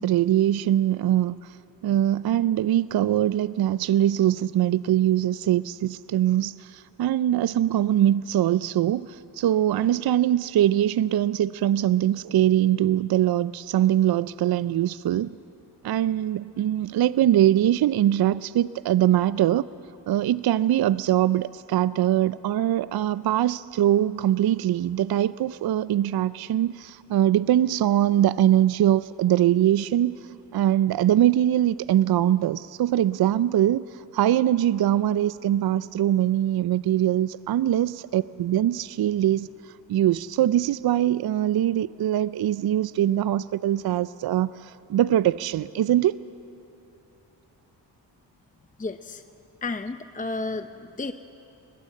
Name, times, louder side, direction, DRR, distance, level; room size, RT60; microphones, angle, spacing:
voice 1, 0.0-1.6 1.8-15.4 15.8-19.7 20.1-30.2 30.5-46.2, right 12 dB, 55° right, 17 dB, 0.5 m, -22 dB
voice 2, 48.8-49.2 49.6-51.1, left 3 dB, 20° left, 9 dB, 0.7 m, -32 dB
20.5 x 20.0 x 7.7 m, 2.9 s
cardioid pair, 55°, 44 cm